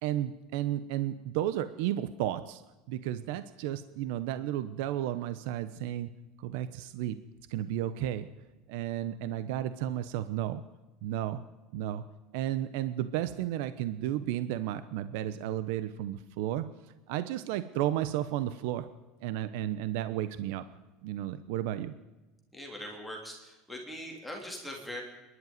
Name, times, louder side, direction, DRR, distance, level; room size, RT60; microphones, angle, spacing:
voice 1, 0.0-2.6 2.9-6.1 6.4-7.2 7.5-8.3 8.7-10.6 11.0-11.4 11.7-12.0 12.3-16.7 17.1-18.9 19.2-20.6 21.0-21.9, right 12 dB, 60° right, 12 dB, 0.9 m, -33 dB
voice 2, 22.5-25.0, equal, ahead, -1 dB, 3.0 m, -41 dB
27.0 x 11.5 x 9.5 m, 1.1 s
cardioid pair, 180°, 0 cm